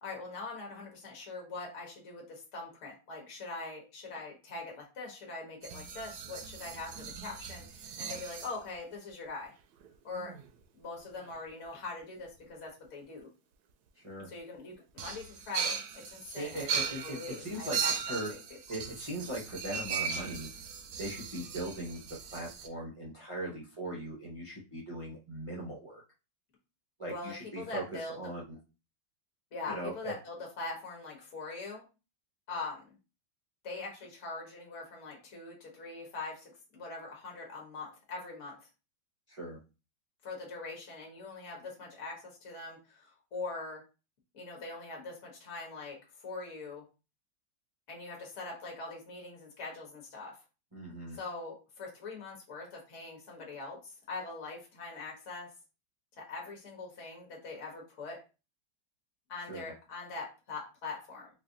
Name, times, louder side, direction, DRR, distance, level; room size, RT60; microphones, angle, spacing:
voice 1, 0.0-9.5 10.0-10.3 10.7-13.3 14.2-18.4 27.1-28.2 29.5-31.9 32.5-32.9 33.6-38.6 40.2-43.8 44.3-46.8 47.9-50.4 51.1-55.5 56.2-58.2 59.3-61.3, left 3 dB, 45° left, -1 dB, 1.3 m, -42 dB
sound 1, 5.6-8.5 9.8-9.9 10.1-10.5 11.2-11.3 15.0-22.7, right 6 dB, 75° right, 1.0 m, -38 dB
voice 2, 14.0-14.3 16.3-18.3 18.7-20.5 21.0-22.0 22.3-26.0 27.0-27.8 28.2-28.6 29.7-30.1 39.3-39.6 50.7-51.2 59.5-59.6, right 1 dB, 50° right, -4 dB, 0.3 m, -39 dB
4.2 x 2.4 x 2.6 m, 0.31 s
omnidirectional pair, 2.0 m